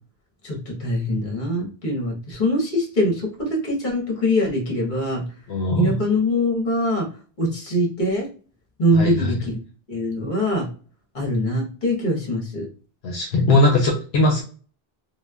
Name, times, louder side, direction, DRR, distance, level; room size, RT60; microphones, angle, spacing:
voice 1, 0.4-5.2 5.7-7.1 7.4-8.3 8.8-9.6 9.9-10.7 11.1-12.7, equal, 50° left, -1 dB, 1.2 m, -23 dB
voice 2, 5.5-6.0 8.9-9.3 13.0-14.4, left 2 dB, 80° left, 0 dB, 0.9 m, -19 dB
3.1 x 2.1 x 2.2 m, 0.40 s
omnidirectional pair, 1.1 m